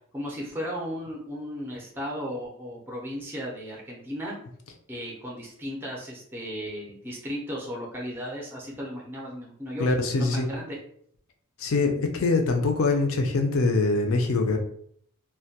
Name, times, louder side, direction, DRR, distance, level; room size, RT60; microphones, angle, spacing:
voice 1, 0.1-4.3 4.9-9.9 10.2-10.8, equal, 10° right, -3 dB, 0.5 m, -35 dB
voice 2, 9.8-10.5 11.6-14.6, left 3 dB, 65° left, 4 dB, 0.4 m, -23 dB
2.2 x 2.1 x 2.7 m, 0.65 s
head